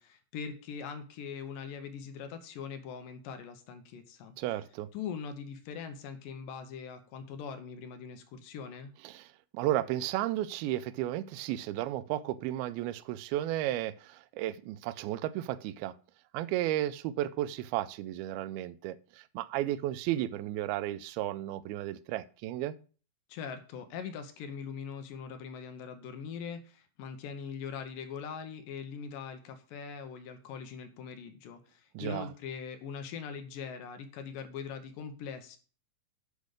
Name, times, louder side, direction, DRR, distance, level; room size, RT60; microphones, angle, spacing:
voice 1, 0.0-4.3 4.9-8.9 23.3-35.6, left 6 dB, 75° left, 2.3 m, -42 dB
voice 2, 4.4-4.9 9.0-15.9 16.3-22.8 31.9-32.3, right 14 dB, 85° right, 2.4 m, -33 dB
8.4 x 5.1 x 6.5 m
omnidirectional pair, 4.3 m